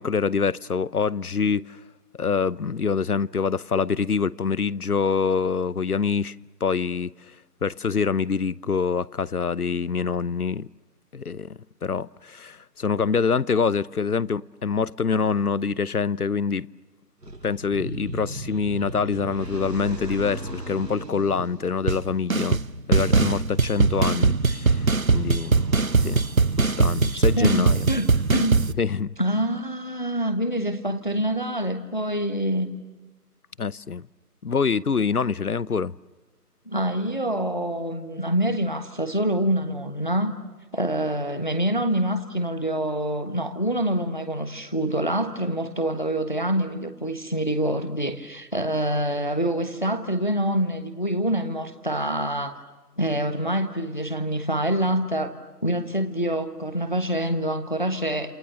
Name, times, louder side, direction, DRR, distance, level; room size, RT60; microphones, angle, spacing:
voice 1, 0.0-1.8 2.2-6.4 6.6-7.1 7.6-10.7 11.1-16.7 17.4-22.6 22.9-26.3 26.6-27.9 28.8-29.1 33.6-34.1 34.4-35.9, left 5 dB, 70° left, 0.8 m, -25 dB
sound 1, 17.2-26.7, right 1 dB, 90° right, 5.4 m, -37 dB
sound 2, 21.9-22.0 22.3-22.7 22.9-28.7, right 4 dB, 60° right, 0.9 m, -21 dB
voice 2, 27.0-28.7 29.2-32.7 36.7-40.3 40.7-52.6 53.0-55.3 55.6-58.3, right 1 dB, 30° left, 1.2 m, -26 dB
30.0 x 28.0 x 6.7 m
figure-of-eight pair, 180°, 47 cm